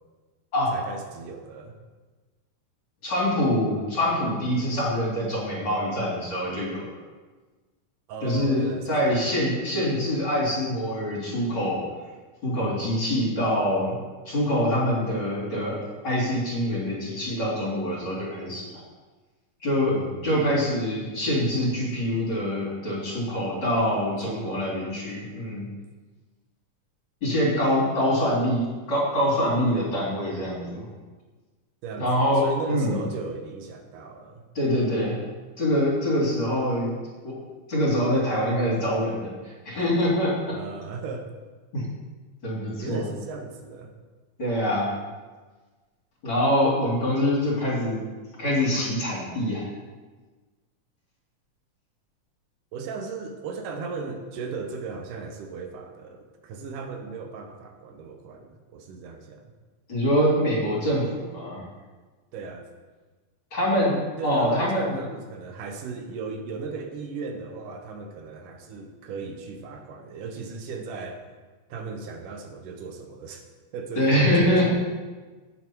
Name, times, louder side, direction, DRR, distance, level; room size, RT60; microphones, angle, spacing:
voice 1, 0.7-1.8 8.1-9.1 19.9-20.5 24.3-24.7 30.3-30.4 31.8-34.4 40.5-41.3 42.8-43.9 52.7-59.5 62.3-62.7 64.2-71.2 71.7-73.4 73.7-74.7, right 4 dB, 80° right, 4 dB, 2.5 m, -37 dB
voice 2, 3.0-6.9 8.2-11.8 12.4-14.0 14.3-15.8 16.0-18.7 19.6-19.9 20.2-25.7 27.2-30.9 32.0-33.0 34.5-35.2 35.6-36.9 37.2-37.3 37.7-40.6 41.7-41.8 42.4-43.0 44.4-44.9 46.2-48.0 48.4-49.7 59.9-61.7 63.5-65.1 74.0-74.7, equal, 40° left, -6 dB, 4.0 m, -24 dB
9.0 x 8.9 x 4.6 m, 1.3 s
omnidirectional pair, 3.6 m